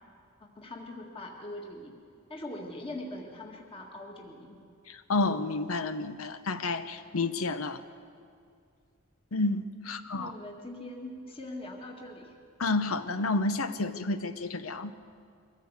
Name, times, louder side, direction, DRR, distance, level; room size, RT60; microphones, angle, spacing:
voice 1, 0.4-2.0 2.3-4.6 10.1-12.4, left 1 dB, 25° left, 0 dB, 2.0 m, -42 dB
voice 2, 4.9-7.8 9.3-10.3 12.6-14.9, left 3 dB, 85° left, 10 dB, 0.9 m, -30 dB
23.5 x 15.5 x 8.2 m, 2.4 s
head